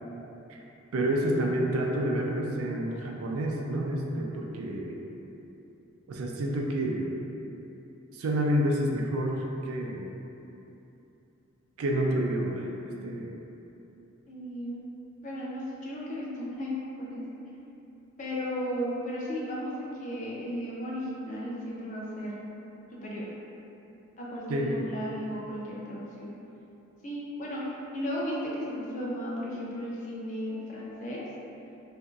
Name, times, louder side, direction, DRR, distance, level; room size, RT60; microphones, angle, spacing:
voice 1, 0.9-5.0 6.1-7.1 8.1-10.1 11.8-12.6 13.0-13.3 24.5-24.8, right 1 dB, 80° right, 0 dB, 0.4 m, -29 dB
voice 2, 14.3-14.8 15.2-17.2 18.2-22.3 23.0-23.3 24.2-26.3 27.0-31.2, equal, 35° left, -5 dB, 0.4 m, -35 dB
2.8 x 2.6 x 2.3 m, 2.9 s
head